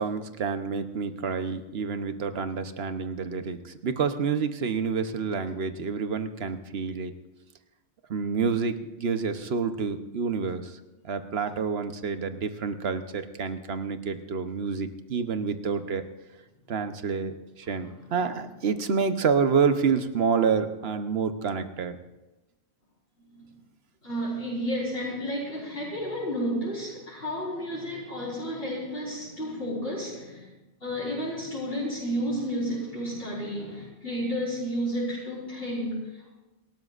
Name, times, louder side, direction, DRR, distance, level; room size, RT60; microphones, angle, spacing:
voice 1, 0.0-7.1 8.1-10.8 11.0-16.0 16.7-22.0, right 5 dB, 70° right, 9 dB, 1.1 m, -28 dB
voice 2, 17.6-18.4 23.4-23.5 24.0-30.5 30.8-36.3, equal, 60° left, -8 dB, 4.4 m, -32 dB
28.0 x 13.0 x 2.5 m, 1.1 s
omnidirectional pair, 1.1 m